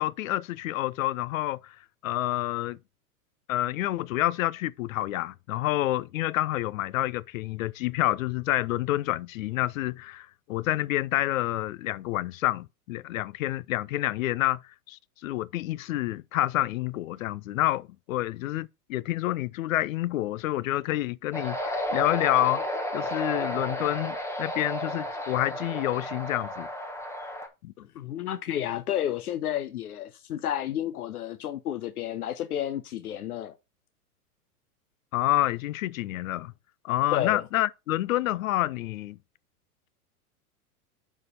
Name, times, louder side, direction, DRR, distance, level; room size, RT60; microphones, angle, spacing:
voice 1, 0.0-1.8 2.0-2.8 3.5-14.6 14.9-22.6 22.9-26.7 27.6-27.7 35.1-36.5 36.8-39.2, left 15 dB, 65° left, 0.6 m, -28 dB
sound 1, 21.3-27.5, left 1 dB, 5° left, 1.5 m, -32 dB
voice 2, 27.8-33.6 37.1-37.4, left 11 dB, 80° left, 0.9 m, -31 dB
6.6 x 5.0 x 5.4 m
hypercardioid pair, 110°, 45 cm